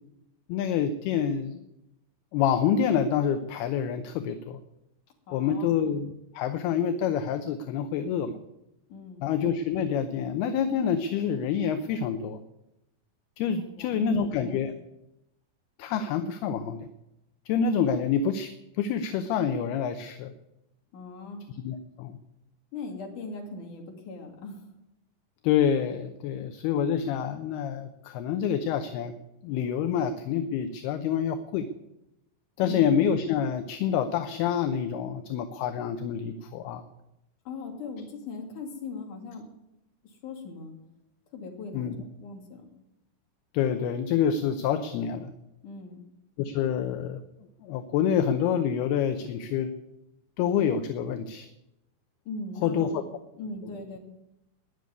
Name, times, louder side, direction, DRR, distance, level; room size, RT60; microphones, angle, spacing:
voice 1, 0.5-1.6 2.3-4.6 5.3-8.4 9.2-12.4 13.4-14.7 15.8-16.9 17.5-18.5 18.8-20.3 21.5-22.2 25.4-29.1 29.4-31.7 32.6-36.8 41.7-42.0 43.5-45.3 46.4-47.2 47.6-49.7 50.4-51.5 52.6-53.0, left 8 dB, 75° left, 8 dB, 2.6 m, -27 dB
voice 2, 5.3-5.8 8.9-9.3 13.6-14.7 17.9-18.0 20.9-21.4 22.7-24.6 32.6-32.8 37.5-39.4 40.2-40.7 41.3-41.9 42.2-42.7 45.6-46.0 52.3-53.0 53.4-54.0, left 3 dB, 50° left, 2 dB, 3.7 m, -39 dB
20.5 x 6.8 x 9.4 m, 0.89 s
omnidirectional pair, 5.0 m